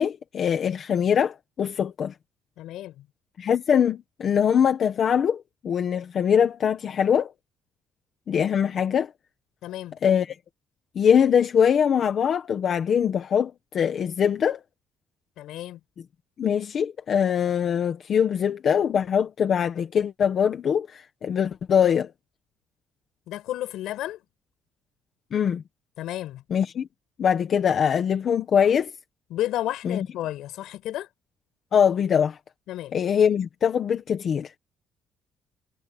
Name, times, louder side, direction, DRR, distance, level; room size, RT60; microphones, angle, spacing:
voice 1, 0.0-2.1 3.4-7.3 8.3-9.1 10.0-10.3 10.9-14.6 16.4-22.1 25.3-25.6 26.5-26.9 27.2-28.9 29.8-30.0 31.7-32.4 32.9-34.5, left 8 dB, 35° left, 1.5 m, -22 dB
voice 2, 2.6-3.1 9.6-10.0 15.4-15.8 23.3-24.2 26.0-26.4 29.3-31.1 32.7-33.0, left 14 dB, 65° left, 5.7 m, -32 dB
cardioid pair, 175°, 0 cm